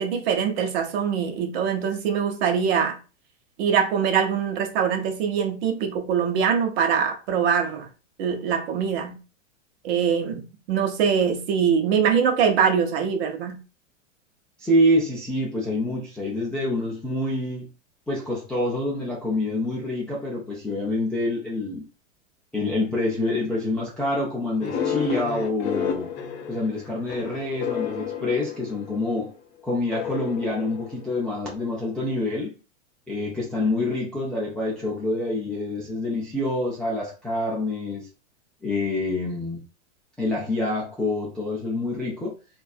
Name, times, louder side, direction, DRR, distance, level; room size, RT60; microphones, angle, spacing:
voice 1, 0.0-3.0 3.6-7.9 8.2-9.2 9.8-13.6, right 7 dB, 50° right, 1.0 m, -23 dB
voice 2, 14.6-17.7 18.1-21.8 22.5-26.1 26.5-29.3 29.6-32.6 33.1-38.1 38.6-39.6 40.2-42.3, left 1 dB, ahead, 0.3 m, -26 dB
sound 1, 24.6-29.2 29.9-31.5, left 7 dB, 55° left, 0.9 m, -31 dB
3.2 x 2.5 x 2.3 m
hypercardioid pair, 120°, 40 cm